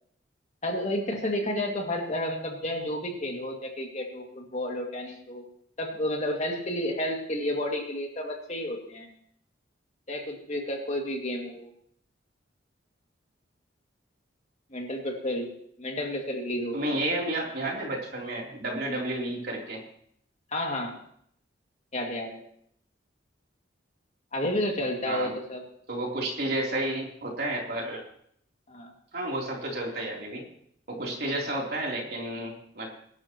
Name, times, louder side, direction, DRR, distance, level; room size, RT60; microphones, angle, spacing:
voice 1, 0.6-5.4 5.8-9.1 10.1-11.7 14.7-15.5 15.8-17.0 20.5-20.9 21.9-22.4 24.3-25.6 28.7-28.9, left 1 dB, 35° left, 1 dB, 2.3 m, -31 dB
voice 2, 16.7-19.8 25.0-25.3 25.9-28.0 29.1-30.4 30.9-32.9, right 1 dB, 55° right, -1 dB, 3.4 m, -31 dB
22.0 x 11.5 x 3.0 m, 0.68 s
head